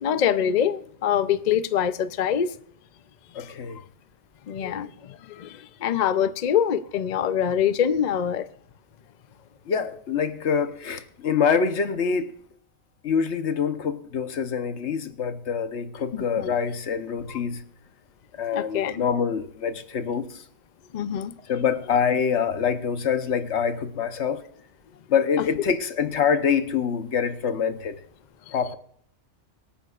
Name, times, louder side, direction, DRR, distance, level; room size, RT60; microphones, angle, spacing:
voice 1, 0.0-2.5 3.4-3.5 4.5-8.5 16.1-16.5 18.5-19.0 20.9-21.4, left 9 dB, 50° left, 0.5 m, -25 dB
voice 2, 3.3-3.8 9.7-12.3 13.0-17.6 18.4-20.4 21.5-24.4 25.1-28.0 28.5-28.8, left 6 dB, 70° left, 1.2 m, -25 dB
24.5 x 9.3 x 2.4 m
omnidirectional pair, 1.2 m